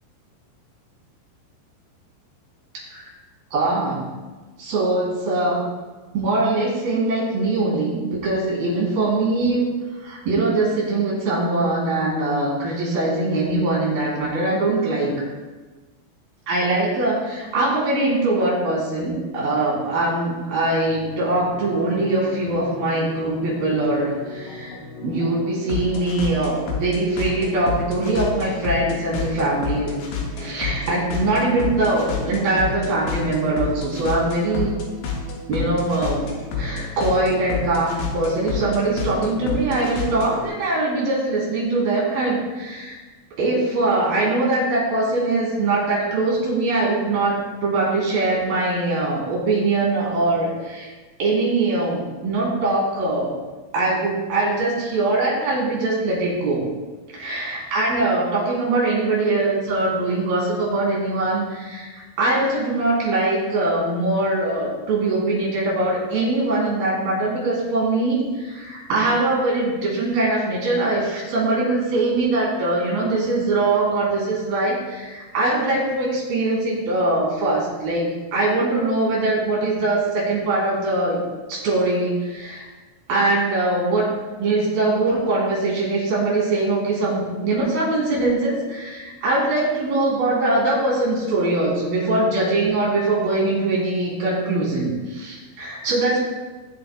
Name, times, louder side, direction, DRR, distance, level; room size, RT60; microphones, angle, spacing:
voice 1, 3.5-4.0 4.6-5.7 6.1-9.7 10.0-15.1 16.5-24.7 25.0-30.0 30.4-34.7 35.5-36.3 36.5-42.9 43.4-50.9 51.2-53.3 53.7-56.6 57.1-81.2 81.5-82.6 83.1-84.1 84.4-96.2, right 2 dB, 55° right, -5 dB, 5.0 m, -22 dB
sound 1, 20.9-40.5, left 4 dB, 75° left, 3.7 m, -31 dB
19.5 x 7.6 x 2.3 m, 1.3 s
omnidirectional pair, 5.2 m